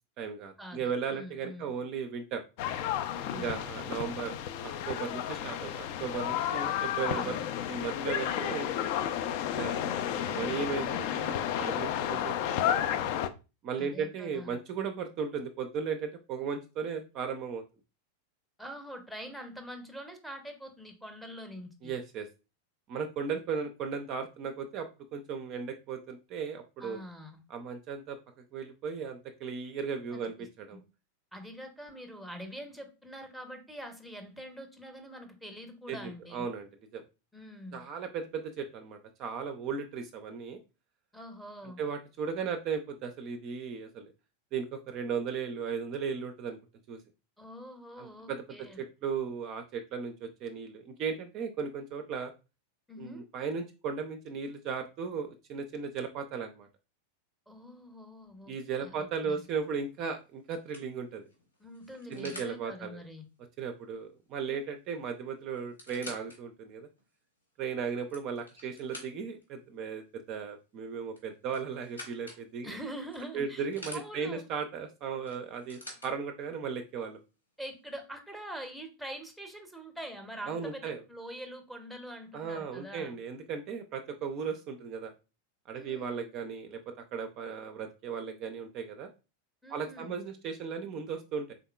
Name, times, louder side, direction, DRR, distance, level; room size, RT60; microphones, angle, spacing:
voice 1, 0.2-2.4 3.3-4.4 4.6-7.4 7.7-8.7 9.6-13.0 13.6-17.6 21.8-22.3 22.9-27.0 27.5-28.2 28.5-30.8 35.9-37.0 37.7-40.6 41.6-44.1 44.5-46.6 46.9-47.0 48.0-52.3 53.0-56.7 58.5-61.2 62.1-63.0 63.6-66.9 67.6-72.8 73.3-77.2 80.5-81.0 82.3-85.1 85.7-89.1 89.7-91.5, right 6 dB, 40° right, 6 dB, 0.4 m, -36 dB
voice 2, 1.1-1.8 3.1-3.5 6.7-7.5 13.8-14.5 18.6-21.9 26.8-27.4 30.1-30.8 31.3-36.5 37.3-37.8 41.1-41.8 47.4-48.8 52.9-53.3 57.5-58.5 58.8-59.4 61.6-63.3 72.6-73.7 73.9-74.4 77.6-83.1 85.7-86.2 89.6-90.2, equal, ahead, 5 dB, 0.7 m, -44 dB
sound 1, 2.6-13.3, left 10 dB, 45° left, 0.3 m, -32 dB
sound 2, 59.6-59.9 60.5-62.6 64.6-64.7 65.0-65.1 65.6-66.4 67.0-67.1 67.8-69.4 71.1-72.4 73.1-74.0 75.3-76.1 77.0-77.1, left 1 dB, 80° left, 1.4 m, -47 dB
3.7 x 3.5 x 2.3 m, 0.30 s
figure-of-eight pair, 90°, 0 cm